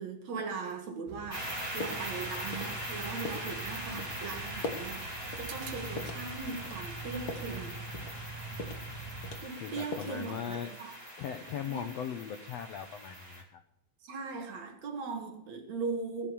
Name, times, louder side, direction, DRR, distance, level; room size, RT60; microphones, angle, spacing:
voice 1, 0.0-7.8 9.4-11.0 11.5-11.9 14.0-16.3, right 4 dB, 55° right, 4 dB, 2.8 m, -39 dB
sound 1, 1.1-9.4, right 3 dB, 80° right, 3.0 m, -44 dB
sound 2, 1.3-13.4, equal, 10° right, 2.4 m, -41 dB
sound 3, 1.8-2.2 2.5-2.8 3.2-3.5 4.0-4.1 4.6-4.9 5.3-5.5 6.0-6.3 6.7-7.5 7.9-8.2 8.6-8.9 9.2-10.2 10.5-11.0, left 3 dB, 55° left, 1.0 m, -40 dB
voice 2, 9.6-10.7 11.2-13.6, left 8 dB, 90° left, 8 dB, 1.4 m, -39 dB
18.5 x 6.5 x 7.0 m, 0.81 s
omnidirectional pair, 4.2 m